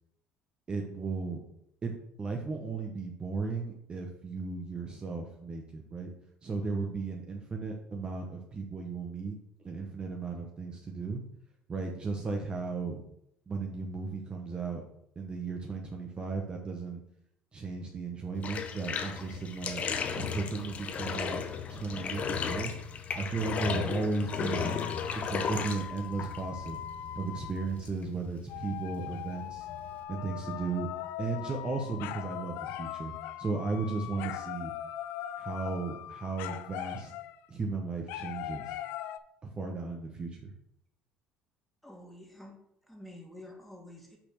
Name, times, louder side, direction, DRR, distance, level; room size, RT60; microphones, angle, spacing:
voice 1, 0.7-1.4 1.8-6.1 6.4-9.4 9.6-11.2 11.7-13.0 13.5-14.8 15.2-17.0 17.5-19.8 20.1-21.4 21.7-22.7 23.1-24.7 25.1-26.8 27.2-29.7 30.1-30.9 31.2-33.1 33.4-34.7 35.4-37.1 37.5-38.8 39.4-40.5, right 4 dB, 30° right, 2 dB, 1.1 m, -35 dB
Bathtub (filling or washing), 18.4-30.0, left 6 dB, 45° left, 1.0 m, -35 dB
sound 1, 24.6-27.8 28.5-37.5 38.1-39.2, left 12 dB, 75° left, 0.4 m, -40 dB
voice 2, 41.8-42.6 42.9-44.2, left 1 dB, ahead, 1 dB, 1.9 m, -48 dB
6.0 x 4.2 x 6.4 m, 0.75 s
supercardioid pair, 95°, 3 cm